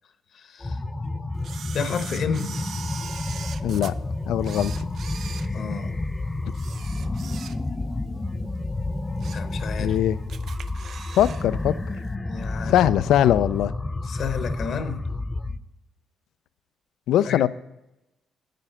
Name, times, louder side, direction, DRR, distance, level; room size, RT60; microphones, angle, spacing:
voice 1, 0.3-0.8 1.7-2.5 5.5-5.9 9.3-10.0 12.3-12.9 14.0-15.0 17.3-17.5, left 7 dB, 60° left, 1.0 m, -31 dB
sound 1, 0.6-15.6, left 2 dB, 20° left, 0.6 m, -30 dB
Camera, 1.4-3.9 4.4-6.0 6.5-7.9 8.2-8.4 8.9-9.5 9.9-10.0 10.3-11.5 11.7-11.8, right 8 dB, 60° right, 0.5 m, -41 dB
voice 2, 3.6-3.9 4.3-4.8 9.8-10.2 11.2-11.7 12.6-13.7 17.1-17.5, left 11 dB, 80° left, 0.4 m, -21 dB
9.1 x 9.0 x 5.7 m
cardioid pair, 90°, 0 cm